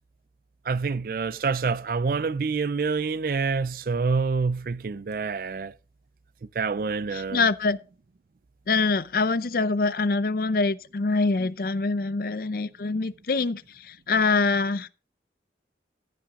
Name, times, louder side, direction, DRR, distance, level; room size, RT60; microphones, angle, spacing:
voice 1, 0.7-5.7 6.6-7.5, right 4 dB, 50° right, 0.4 m, -27 dB
voice 2, 7.1-7.8 8.7-14.9, left 3 dB, 55° left, 0.5 m, -25 dB
14.5 x 5.9 x 3.7 m
head